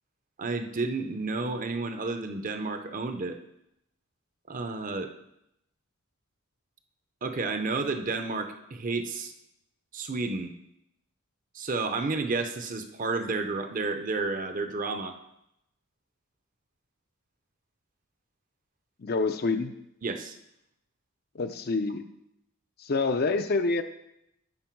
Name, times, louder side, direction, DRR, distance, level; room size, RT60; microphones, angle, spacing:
voice 1, 0.4-3.4 4.5-5.1 7.2-9.3 9.9-10.5 11.5-15.1 20.0-20.4, right 3 dB, 35° right, 7 dB, 0.6 m, -31 dB
voice 2, 19.0-19.7 21.3-22.0 22.8-23.8, left 3 dB, 45° left, 8 dB, 0.5 m, -27 dB
11.5 x 4.5 x 4.6 m, 0.81 s
head